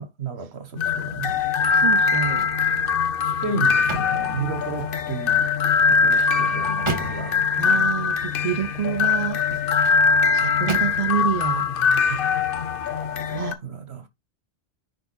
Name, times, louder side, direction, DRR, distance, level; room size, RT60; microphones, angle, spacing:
voice 1, 0.0-1.4 2.7-2.9 3.2-5.5 5.9-7.9 12.1-12.2 13.3-14.1, right 5 dB, 80° right, 1.7 m, -33 dB
sound 1, 0.8-13.5, left 5 dB, 60° left, 0.9 m, -22 dB
voice 2, 1.7-2.5 7.6-9.4 10.3-11.7 13.3-13.6, right 8 dB, 45° right, 0.6 m, -27 dB
sound 2, 1.9-2.6 3.0-5.0 5.7-7.5 9.3-10.0 10.7-11.3 11.8-12.0, right 1 dB, 30° right, 1.5 m, -35 dB
10.0 x 3.7 x 4.3 m
omnidirectional pair, 1.1 m